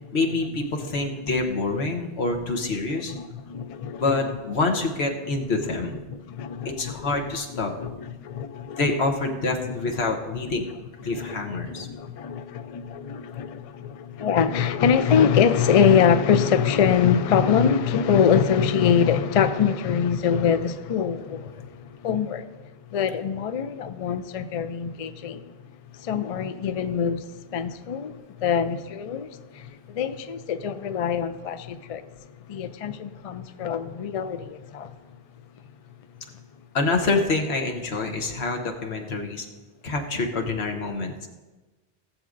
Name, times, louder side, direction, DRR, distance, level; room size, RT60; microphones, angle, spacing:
voice 1, 0.1-3.1 4.0-6.0 6.8-7.7 8.8-10.7 11.0-11.9 36.7-39.5 39.8-41.3, left 3 dB, 75° left, 1.3 m, -26 dB
voice 2, 3.1-4.4 5.7-5.8 6.1-7.1 7.5-8.8 9.7-9.8 11.1-22.5 22.9-25.5 25.9-32.1 32.5-34.9, left 7 dB, 50° left, 0.4 m, -24 dB
17.5 x 7.6 x 2.5 m
omnidirectional pair, 1.1 m